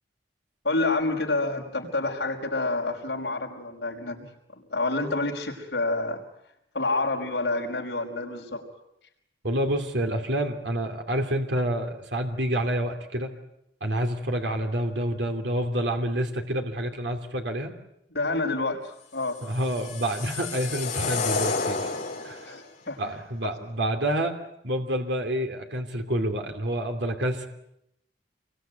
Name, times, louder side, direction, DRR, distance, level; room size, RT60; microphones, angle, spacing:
voice 1, 0.6-4.3 4.5-6.2 6.7-8.7 18.1-19.4 22.4-23.1 23.4-23.5, left 2 dB, 65° left, 1 dB, 5.4 m, -28 dB
voice 2, 9.4-13.3 13.8-17.7 19.4-21.9 22.2-22.6 23.0-24.3 24.6-27.5, right 1 dB, 75° right, 4 dB, 2.8 m, -28 dB
sound 1, 19.4-22.6, left 4 dB, 45° left, 5.1 m, -30 dB
27.5 x 23.0 x 9.2 m, 0.81 s
head